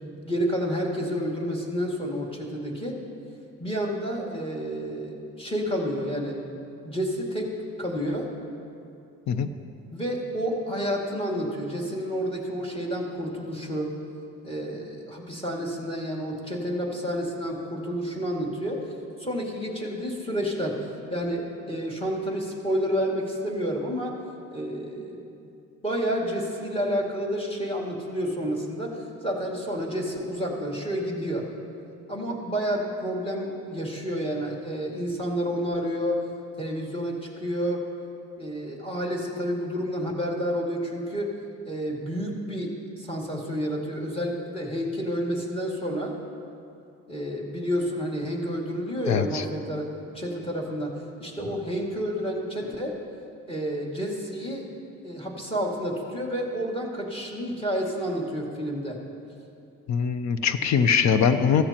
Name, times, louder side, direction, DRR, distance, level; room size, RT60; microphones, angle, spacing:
voice 1, 0.0-3.0 3.6-7.5 7.8-8.3 9.9-13.9 14.4-18.8 19.2-20.8 21.1-24.2 24.5-25.3 25.8-31.4 32.1-36.2 36.6-37.8 38.4-41.3 41.6-42.7 43.0-46.1 47.1-50.9 51.2-52.9 53.5-54.6 55.0-59.0, equal, 15° left, -2 dB, 2.3 m, -30 dB
voice 2, 49.1-49.4 59.9-61.6, left 7 dB, 60° left, 10 dB, 0.7 m, -22 dB
15.0 x 13.5 x 3.0 m, 2.6 s
cardioid pair, 95°, 32 cm